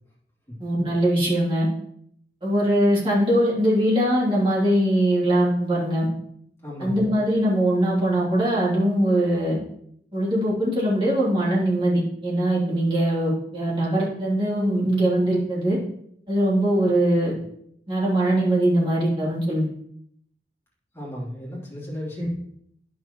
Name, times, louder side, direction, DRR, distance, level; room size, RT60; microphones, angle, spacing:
voice 1, 0.6-1.7 2.4-6.1 6.8-9.6 10.1-15.8 16.3-17.3 17.9-19.6 22.2-22.3, right 1 dB, 30° right, -6 dB, 3.0 m, -21 dB
voice 2, 6.6-7.1 20.9-22.3, equal, 15° left, -7 dB, 3.2 m, -34 dB
10.5 x 6.3 x 3.1 m, 0.70 s
head